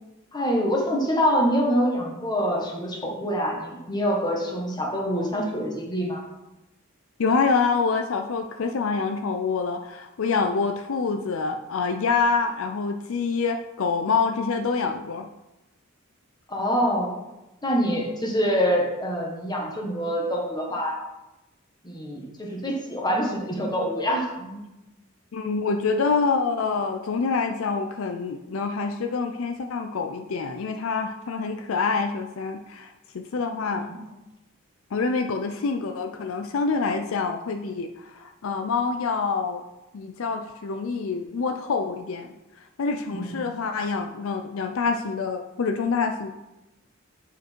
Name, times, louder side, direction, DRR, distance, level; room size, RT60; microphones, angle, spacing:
voice 1, 0.3-6.3 16.5-17.1 17.6-21.0 21.8-24.6 33.6-34.0 43.1-43.5, equal, 20° left, 0 dB, 1.4 m, -25 dB
voice 2, 7.2-15.3 25.3-33.9 34.9-39.6 39.9-42.3 42.8-46.3, left 4 dB, 65° left, 6 dB, 0.4 m, -26 dB
7.8 x 5.0 x 4.5 m, 0.98 s
head